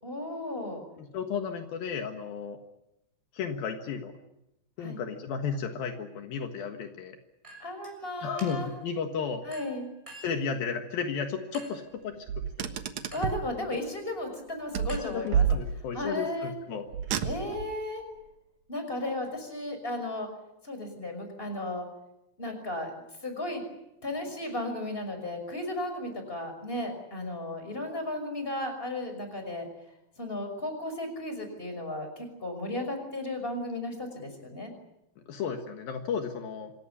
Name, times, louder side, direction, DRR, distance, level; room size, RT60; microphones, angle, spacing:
voice 1, 0.0-0.8 4.8-5.0 7.6-8.7 9.4-9.8 13.1-15.5 15.9-16.5 17.2-18.0 18.7-20.3 20.6-21.8 22.4-22.9 23.2-23.6 24.0-29.7 30.2-34.7, left 1 dB, 15° left, 6 dB, 5.8 m, -34 dB
voice 2, 1.0-2.6 3.3-4.1 4.8-7.2 8.2-9.4 10.2-12.2 12.6-12.7 14.9-16.9 35.3-36.7, left 6 dB, 75° left, 5 dB, 3.3 m, -33 dB
Chink clink, 7.4-8.0 8.4-8.8 9.5-10.5 11.5-11.9 13.1-13.4 14.9-15.7, right 1 dB, 10° right, 6.4 m, -49 dB
Car, 12.3-13.5 14.7-16.1 16.9-17.8, right 7 dB, 60° right, 2.4 m, -29 dB
26.5 x 17.5 x 9.9 m, 0.88 s
omnidirectional pair, 4.4 m